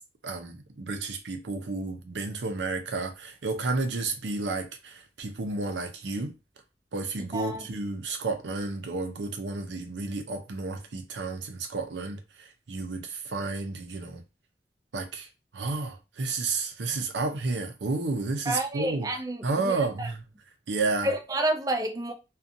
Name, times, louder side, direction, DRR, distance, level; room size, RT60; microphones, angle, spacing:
voice 1, 0.2-6.3 6.9-14.2 14.9-15.3 15.5-19.1 19.4-20.2 20.7-21.1, right 3 dB, 85° right, 0.6 m, -31 dB
voice 2, 7.3-7.6 18.5-20.1 21.0-22.1, right 1 dB, 20° right, 0.4 m, -30 dB
2.5 x 2.3 x 2.6 m
head